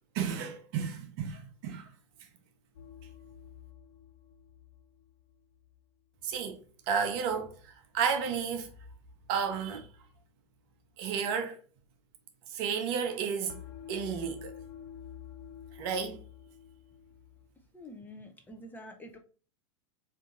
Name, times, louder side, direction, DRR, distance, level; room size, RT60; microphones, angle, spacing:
voice 1, 0.1-1.9 6.2-6.6 6.9-8.7 9.3-9.9 11.0-11.6 12.5-13.6 13.9-14.5 15.7-16.2, right 6 dB, 50° right, 0.7 m, -32 dB
sound 1, 2.8-5.8 13.5-17.5, left 8 dB, 55° left, 0.6 m, -49 dB
voice 2, 17.7-19.2, left 1 dB, 10° left, 0.6 m, -47 dB
3.6 x 2.6 x 3.8 m
figure-of-eight pair, 90°, 16 cm